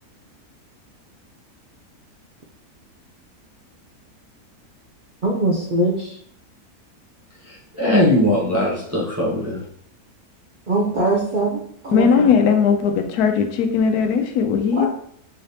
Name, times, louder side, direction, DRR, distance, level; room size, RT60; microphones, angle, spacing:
voice 1, 5.2-6.2 10.7-12.2 14.8-14.9, right 2 dB, 55° right, -3 dB, 0.5 m, -22 dB
voice 2, 7.5-9.6, left 1 dB, 15° right, -6 dB, 0.6 m, -20 dB
voice 3, 11.9-14.9, left 6 dB, 80° left, 6 dB, 1.1 m, -18 dB
3.7 x 3.2 x 2.8 m, 0.64 s
omnidirectional pair, 1.6 m